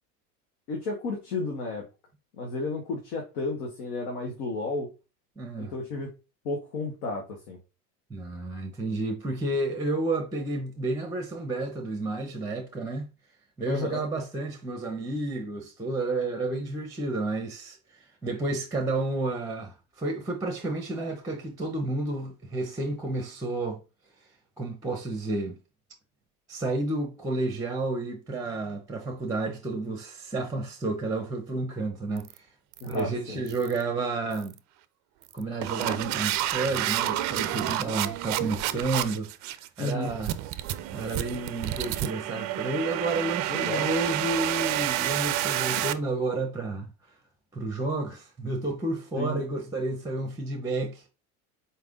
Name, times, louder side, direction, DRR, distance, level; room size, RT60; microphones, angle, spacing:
voice 1, 0.7-1.8 2.4-4.9 5.6-6.1 6.4-7.6 13.7-14.0 32.8-33.4 39.8-40.1 43.5-43.9 49.2-49.4, left 3 dB, 70° left, 1.3 m, -32 dB
voice 2, 5.4-5.7 8.1-13.1 13.6-23.8 24.6-25.6 26.5-32.5 32.9-34.6 35.3-40.3 40.9-46.9 47.5-51.0, right 2 dB, 5° right, 0.7 m, -31 dB
sound 1, 32.2-32.4 32.7-33.0 33.5-33.8 34.3-34.6 35.2-45.9, right 14 dB, 40° right, 0.4 m, -30 dB
4.4 x 3.3 x 2.5 m
hypercardioid pair, 80°, 47 cm